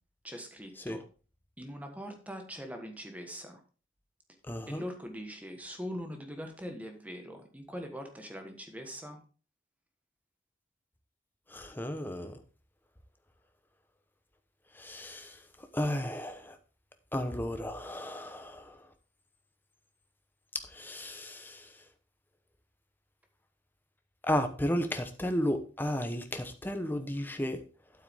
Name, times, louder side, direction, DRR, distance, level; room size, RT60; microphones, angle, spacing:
voice 1, 0.2-1.0 1.6-3.6 4.7-9.2, equal, 10° right, 5 dB, 1.3 m, -42 dB
voice 2, 4.4-4.8 11.5-12.4 14.7-16.6 17.1-18.9 20.5-21.8 24.2-27.6, left 1 dB, 10° left, 7 dB, 0.9 m, -34 dB
9.1 x 8.3 x 3.6 m, 0.36 s
head